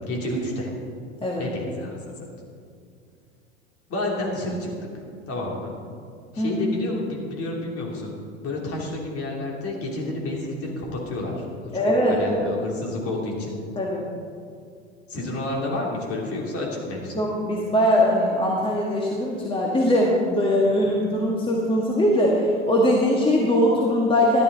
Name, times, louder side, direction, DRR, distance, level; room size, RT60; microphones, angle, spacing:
voice 1, 0.1-0.7 1.4-2.3 3.9-4.7 5.3-5.8 6.3-8.1 8.4-13.6 15.1-17.2, left 1 dB, 40° left, -1 dB, 3.1 m, -30 dB
voice 2, 11.7-12.5 13.8-14.1 17.1-24.4, equal, 15° left, -2 dB, 1.6 m, -21 dB
13.5 x 11.0 x 4.0 m, 2.3 s
hypercardioid pair, 90°, 35 cm